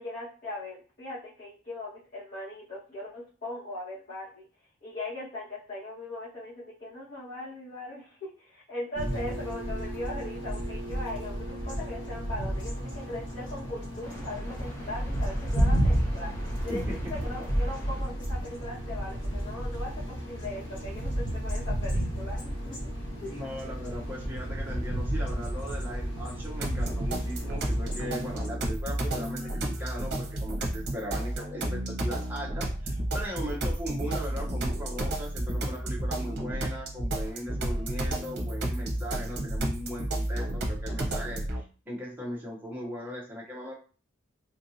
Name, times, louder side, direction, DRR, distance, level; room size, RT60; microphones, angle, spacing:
voice 1, 0.0-4.5 4.8-16.3 16.6-16.8 17.1-22.9 23.2-23.4, left 1 dB, 40° left, -12 dB, 1.5 m, -39 dB
sound 1, 8.9-28.5, equal, 60° left, 1.2 m, -32 dB
sound 2, 14.0-19.2, left 1 dB, 15° left, 0.9 m, -48 dB
voice 2, 23.2-43.7, equal, 10° right, -4 dB, 0.6 m, -38 dB
sound 3, 26.6-41.6, right 1 dB, 50° right, 0.8 m, -31 dB
3.6 x 2.6 x 2.7 m, 0.37 s
head